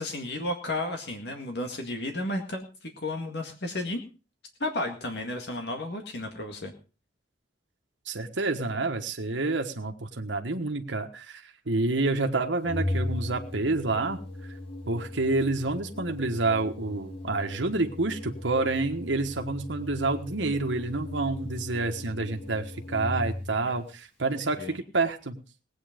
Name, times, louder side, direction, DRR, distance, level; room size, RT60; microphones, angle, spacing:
voice 1, 0.0-4.0 4.6-6.7 23.7-23.8 24.6-24.8, left 1 dB, 65° left, 4 dB, 1.9 m, -33 dB
voice 2, 8.1-14.2 14.9-25.4, right 3 dB, 90° right, 5 dB, 1.4 m, -28 dB
Organ, 12.6-23.6, left 1 dB, 35° left, 2.9 m, -37 dB
19.0 x 8.8 x 5.1 m, 0.35 s
head